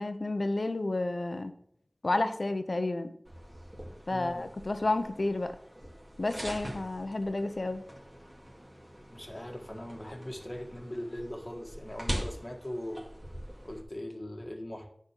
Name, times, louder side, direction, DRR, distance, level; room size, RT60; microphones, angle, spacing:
voice 1, 0.0-1.5 2.0-3.1 4.1-5.5 6.2-7.8, left 2 dB, 70° left, 9 dB, 0.8 m, -31 dB
sound 1, 3.2-13.8, equal, 20° right, 2.3 m, -43 dB
voice 2, 4.1-4.5 9.1-13.0 13.6-14.9, left 1 dB, 30° left, 3 dB, 1.6 m, -40 dB
9.9 x 4.4 x 7.3 m, 0.67 s
wide cardioid pair, 50°, 0 cm